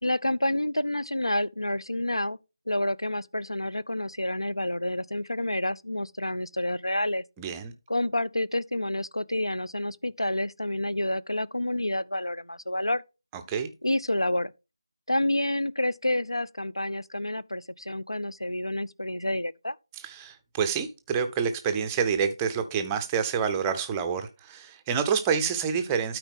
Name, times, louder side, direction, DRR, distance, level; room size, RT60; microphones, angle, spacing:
voice 1, 0.0-2.4 2.7-7.2 7.9-13.0 13.8-14.5 15.1-19.8, left 1 dB, 85° left, 0.5 m, -29 dB
voice 2, 7.4-7.7 13.5-13.7 20.0-26.2, right 6 dB, 10° right, 0.5 m, -28 dB
12.5 x 4.6 x 3.6 m
figure-of-eight pair, 165°, 3 cm